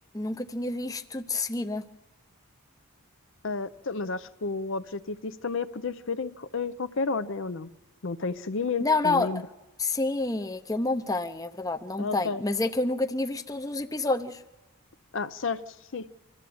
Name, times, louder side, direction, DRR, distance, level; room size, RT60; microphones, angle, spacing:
voice 1, 0.1-1.8 8.8-9.3 9.8-14.4, left 2 dB, 15° left, 7 dB, 0.7 m, -28 dB
voice 2, 3.4-7.7 8.0-9.4 12.0-12.4 15.1-16.1, left 4 dB, 60° left, 12 dB, 0.6 m, -31 dB
25.5 x 14.0 x 7.8 m, 1.0 s
head